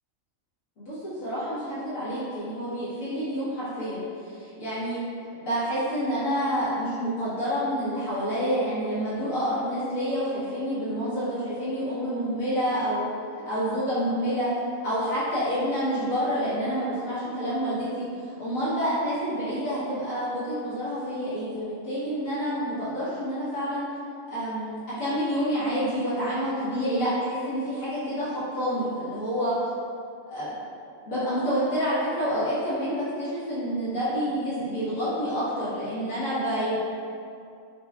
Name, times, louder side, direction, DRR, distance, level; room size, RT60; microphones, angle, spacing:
voice 1, 0.8-4.0 4.3-5.0 5.4-13.1 13.4-14.5 14.8-18.1 18.4-23.9 24.3-29.5 30.3-30.6 31.0-36.8, equal, 85° left, -12 dB, 1.5 m, -28 dB
6.5 x 2.4 x 2.3 m, 2.5 s
omnidirectional pair, 1.4 m